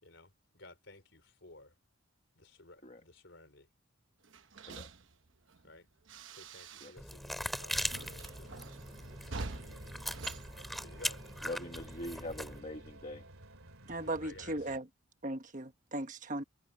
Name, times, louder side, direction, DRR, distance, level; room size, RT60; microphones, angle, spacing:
voice 1, 0.0-1.7 2.3-3.7 5.6-5.9 6.3-8.6 9.2-9.5 10.7-11.2 14.0-14.7, left 2 dB, 60° left, 5.1 m, -55 dB
sound 1, 4.2-7.2 7.4-11.3, right 3 dB, 65° right, 1.0 m, -47 dB
sound 2, 7.0-12.6, equal, ahead, 5.4 m, -40 dB
sound 3, 7.8-14.8, right 1 dB, 85° right, 2.9 m, -53 dB
voice 2, 11.4-13.2, left 1 dB, 35° left, 1.5 m, -43 dB
voice 3, 13.9-14.9 15.2-16.4, right 1 dB, 35° right, 1.3 m, -37 dB
head